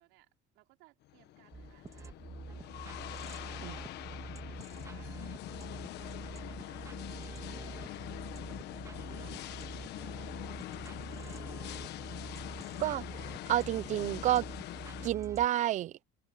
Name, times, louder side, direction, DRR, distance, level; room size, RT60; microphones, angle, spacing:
voice 1, 0.0-2.9 4.7-5.2 6.0-6.8 7.8-8.1 8.7-11.4, right 21 dB, 80° right, 4.7 m, -64 dB
sound 1, 1.0-15.1, left 14 dB, 55° left, 1.3 m, -44 dB
sound 2, 1.5-15.5, right 4 dB, 15° right, 1.7 m, -46 dB
voice 2, 13.5-14.4 15.0-15.9, right 13 dB, 35° right, 0.4 m, -29 dB
open air
cardioid pair, 165°, 20 cm